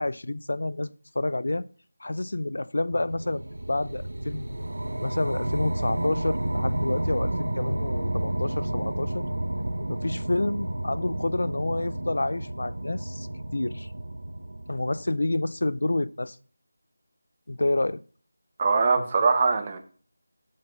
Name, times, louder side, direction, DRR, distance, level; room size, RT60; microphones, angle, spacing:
voice 1, 0.0-1.6 2.0-4.4 5.0-9.3 9.8-13.9 14.7-16.4 17.5-18.0, left 2 dB, 70° left, 0.5 m, -29 dB
sound 1, 2.9-15.4, right 1 dB, 80° right, 1.1 m, -31 dB
voice 2, 18.6-19.8, right 4 dB, 20° right, 0.9 m, -22 dB
7.6 x 5.7 x 5.2 m
figure-of-eight pair, 175°, 0 cm